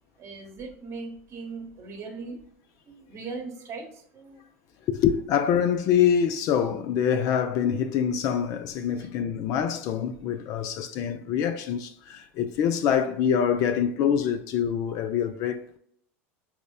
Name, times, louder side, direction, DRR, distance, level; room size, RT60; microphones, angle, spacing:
voice 1, 0.2-2.4 2.9-4.4 9.0-9.1, right 4 dB, 35° right, 1.0 m, -39 dB
voice 2, 4.9-15.8, left 8 dB, 50° left, 0.3 m, -25 dB
5.1 x 2.1 x 2.2 m
hypercardioid pair, 85°, 8 cm